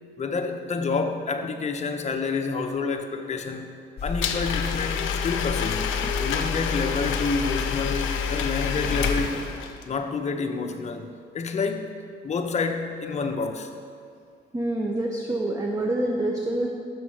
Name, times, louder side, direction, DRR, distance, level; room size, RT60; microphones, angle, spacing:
voice 1, 0.2-3.7 4.0-5.9 6.2-9.3 9.8-11.1 11.3-11.9 12.2-13.7, left 4 dB, 35° left, 5 dB, 0.6 m, -28 dB
sound 1, 4.0-9.3, left 5 dB, 55° left, 0.9 m, -30 dB
Domestic sounds home sounds, 4.2-9.9, left 6 dB, 90° left, 0.5 m, -30 dB
voice 2, 14.5-16.7, right 1 dB, 20° right, 0 dB, 0.6 m, -26 dB
6.3 x 5.6 x 4.8 m, 2.3 s
cardioid pair, 90°, 20 cm